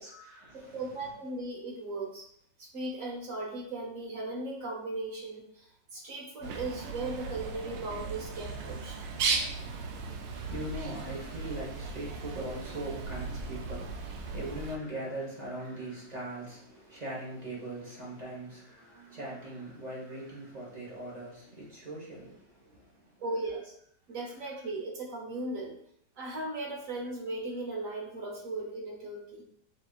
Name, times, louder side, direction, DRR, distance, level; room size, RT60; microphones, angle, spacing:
voice 1, 0.0-0.9 10.3-23.2, right 1 dB, 25° right, 1.2 m, -41 dB
voice 2, 0.6-2.3 2.6-9.0 23.2-23.7 24.1-25.7 26.2-29.4, right 2 dB, 55° right, 1.2 m, -37 dB
Bird, 6.4-14.8, right 4 dB, 90° right, 1.3 m, -36 dB
6.2 x 2.8 x 2.4 m
omnidirectional pair, 1.9 m